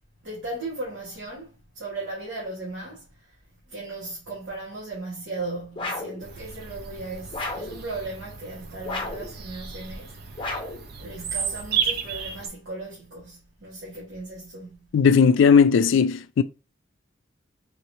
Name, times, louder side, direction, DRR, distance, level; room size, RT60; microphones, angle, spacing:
voice 1, 0.2-3.0 3.7-10.5 11.0-14.9, right 2 dB, 70° right, 1.4 m, -37 dB
sound 1, 5.8-6.2 7.3-7.8 8.8-9.3 10.4-10.9, left 2 dB, 25° left, 0.7 m, -32 dB
Bird vocalization bird call bird song, 6.2-12.5, right 7 dB, 50° right, 0.5 m, -33 dB
voice 2, 14.9-16.4, left 6 dB, 70° left, 0.3 m, -17 dB
3.8 x 3.0 x 2.7 m
head